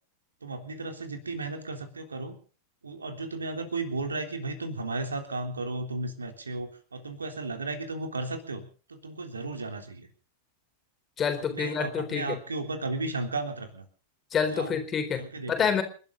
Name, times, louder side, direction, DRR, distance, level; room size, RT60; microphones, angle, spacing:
voice 1, 0.4-2.4 2.8-10.1 11.5-13.8 14.5-14.8 15.2-15.5, right 3 dB, 75° right, 6 dB, 3.5 m, -34 dB
voice 2, 11.2-12.4 14.3-15.8, left 7 dB, 25° left, 8 dB, 3.9 m, -28 dB
29.5 x 12.0 x 4.0 m, 0.39 s
figure-of-eight pair, 90°, 0 cm